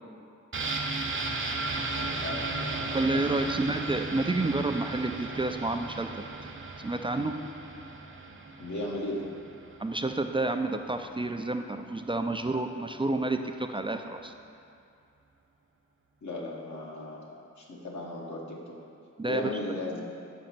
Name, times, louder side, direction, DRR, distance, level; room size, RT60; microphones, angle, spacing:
sound 1, 0.5-10.2 10.5-10.6, right 3 dB, 40° right, 0.7 m, -35 dB
voice 1, 1.9-3.1 3.4-3.8 8.3-9.3 16.2-18.7 19.2-20.0, left 1 dB, 70° left, -3 dB, 1.3 m, -37 dB
voice 2, 2.9-6.1 6.8-7.4 9.8-14.3 19.2-19.5, right 2 dB, 20° right, 6 dB, 0.3 m, -29 dB
5.2 x 5.1 x 5.8 m, 2.5 s
cardioid pair, 50°, 30 cm